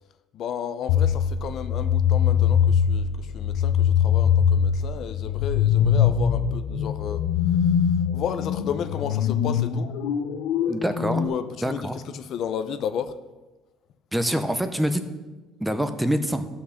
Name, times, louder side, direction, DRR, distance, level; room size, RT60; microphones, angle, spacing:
voice 1, 0.3-7.2 7.6-7.8 8.1-10.0 11.1-13.2, left 8 dB, 45° left, 0.6 m, -33 dB
sound 1, 0.9-11.2, left 8 dB, 80° left, 0.8 m, -22 dB
voice 2, 10.7-11.2 11.6-12.0 14.1-15.0 15.6-16.5, equal, 5° right, 0.7 m, -25 dB
14.0 x 5.9 x 6.4 m
cardioid pair, 160°, 0 cm